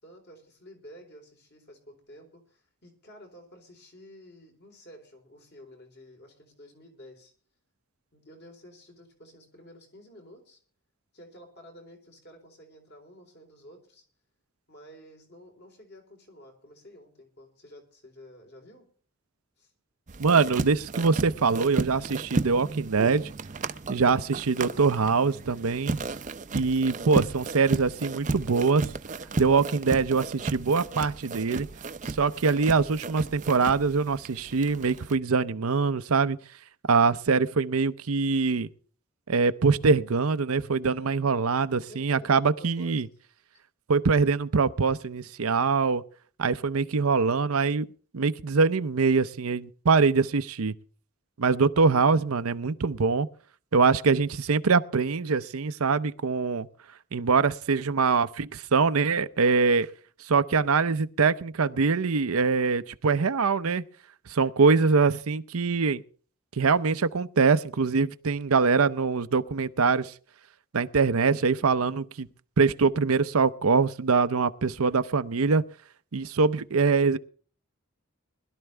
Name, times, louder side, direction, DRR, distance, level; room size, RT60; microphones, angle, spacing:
voice 1, 0.0-7.3 8.1-10.6 11.1-14.0 14.7-18.9 19.6-19.7 40.8-41.3 41.8-43.0 43.5-43.6, equal, 50° left, 4.0 m, -51 dB
sound 1, 20.1-35.2, right 3 dB, 35° right, 0.6 m, -34 dB
voice 2, 20.2-23.3 23.9-26.0 26.5-28.9 29.4-31.7 32.1-36.4 36.9-38.7 39.3-43.1 43.9-46.0 46.4-47.9 48.1-50.7 51.4-53.3 53.7-56.7 57.1-59.9 60.2-63.8 64.3-66.0 66.6-70.1 70.7-72.3 72.6-75.6 76.1-77.2, right 4 dB, 85° right, 0.7 m, -23 dB
21.0 x 12.0 x 3.4 m
head